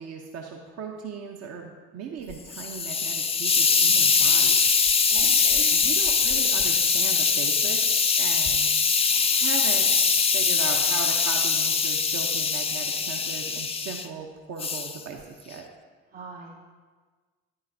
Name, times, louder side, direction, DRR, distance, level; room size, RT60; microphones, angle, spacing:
voice 1, 0.0-4.5 5.7-8.7 9.1-15.6, right 5 dB, 45° right, 2 dB, 0.8 m, -38 dB
Hiss, 2.3-14.1 14.6-15.0, left 5 dB, 15° left, 0.4 m, -22 dB
voice 2, 5.1-5.6 16.1-16.5, right 3 dB, 80° right, -9 dB, 2.8 m, -41 dB
9.6 x 9.3 x 2.7 m, 1.4 s
figure-of-eight pair, 45°, 36 cm